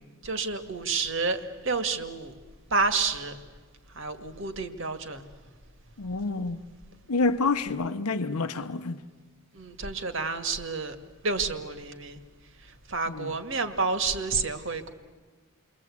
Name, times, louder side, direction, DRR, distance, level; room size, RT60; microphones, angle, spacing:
voice 1, 0.2-2.3 2.7-3.4 4.0-5.3 9.5-11.0 11.2-12.2 12.9-14.9, right 4 dB, 60° right, 1.9 m, -29 dB
voice 2, 6.0-6.6 7.1-9.0 13.1-13.3, left 3 dB, 90° left, 0.9 m, -28 dB
29.5 x 22.5 x 8.5 m
head